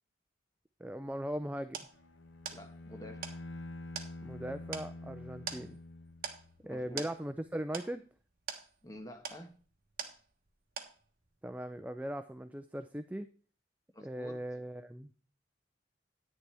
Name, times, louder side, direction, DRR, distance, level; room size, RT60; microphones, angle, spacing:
voice 1, 0.8-1.9 4.2-5.8 6.7-8.0 11.4-13.3 14.0-15.1, equal, 10° right, 0.4 m, -39 dB
sound 1, 1.1-10.5 10.8-11.3, right 6 dB, 50° right, 1.3 m, -45 dB
Bowed string instrument, 1.9-6.7, left 2 dB, 85° left, 0.8 m, -47 dB
voice 2, 2.5-3.3 6.6-7.0 8.8-9.5 13.9-14.4, left 1 dB, 20° left, 1.3 m, -49 dB
10.5 x 9.4 x 3.4 m
head